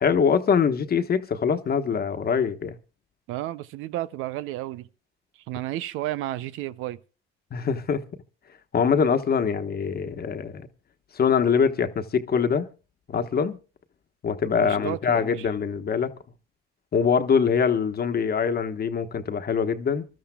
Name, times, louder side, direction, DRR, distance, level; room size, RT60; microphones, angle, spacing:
voice 1, 0.0-2.8 7.5-8.0 8.7-10.6 11.1-12.7 13.1-13.6 14.2-16.1 16.9-20.1, left 6 dB, 50° left, 1.2 m, -23 dB
voice 2, 3.3-4.9 5.5-7.0 14.6-15.5, right 14 dB, 80° right, 0.6 m, -32 dB
26.5 x 12.5 x 2.3 m
supercardioid pair, 65°, 21 cm